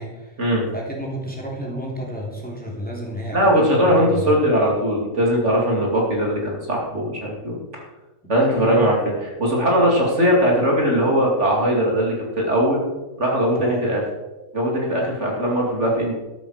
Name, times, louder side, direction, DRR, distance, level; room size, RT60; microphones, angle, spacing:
voice 1, 0.0-0.3 0.7-4.4 8.4-8.8 13.6-13.8, equal, 5° left, -3 dB, 3.2 m, -31 dB
voice 2, 3.3-7.6 8.3-12.8 13.2-14.0 14.5-16.1, equal, 55° right, -2 dB, 3.0 m, -20 dB
13.0 x 11.5 x 5.0 m, 1.1 s
omnidirectional pair, 1.5 m